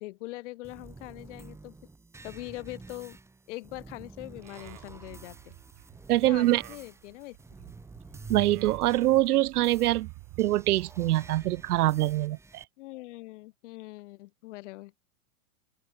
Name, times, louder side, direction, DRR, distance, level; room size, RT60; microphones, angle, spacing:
voice 1, 0.0-1.8 2.2-3.2 3.5-5.5 6.2-7.4 12.8-14.9, left 20 dB, 50° left, 1.3 m, -42 dB
sound 1, 0.6-12.6, right 3 dB, 5° right, 1.3 m, -49 dB
Livestock farm animals working animals, 4.4-12.3, right 26 dB, 40° right, 2.5 m, -48 dB
voice 2, 6.1-6.6 8.3-10.1 10.4-12.6, right 15 dB, 80° right, 0.5 m, -24 dB
open air
hypercardioid pair, 120°, 45 cm